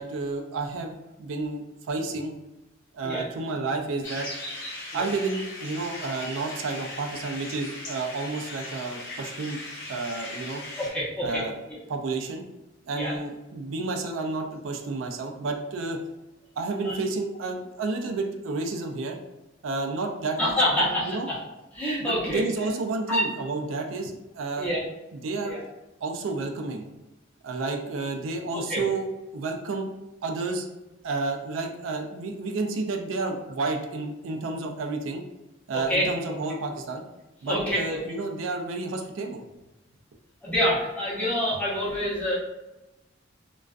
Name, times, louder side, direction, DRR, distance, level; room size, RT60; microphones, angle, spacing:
voice 1, 0.0-2.3 2.9-4.3 4.9-9.6 9.9-10.6 11.2-11.6 11.9-12.4 12.9-16.0 16.6-19.2 19.6-21.3 22.0-24.7 25.1-25.6 26.0-26.9 27.4-29.0 29.3-29.9 30.2-30.7 31.0-35.2 35.7-37.0 37.4-39.4, right 3 dB, 85° right, 4 dB, 0.4 m, -31 dB
sound 1, 4.0-10.9, left 2 dB, 75° left, 0.7 m, -38 dB
voice 2, 10.8-11.4 12.9-13.1 16.8-17.0 20.4-21.4 21.7-22.7 23.1-23.3 24.6-24.8 25.4-25.6 28.5-28.8 35.9-36.1 37.4-38.0 40.4-42.3, equal, 10° left, -8 dB, 0.8 m, -27 dB
2.4 x 2.2 x 2.3 m, 0.98 s
head